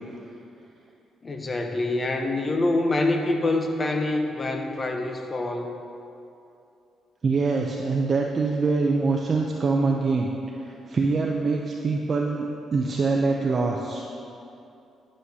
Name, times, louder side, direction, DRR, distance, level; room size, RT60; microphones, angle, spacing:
voice 1, 1.2-5.7, left 2 dB, 30° left, 4 dB, 0.8 m, -25 dB
voice 2, 7.2-10.3 10.6-14.1, right 4 dB, 40° right, 0 dB, 0.5 m, -24 dB
11.0 x 6.3 x 2.8 m, 2.7 s
cardioid pair, 90°, 0 cm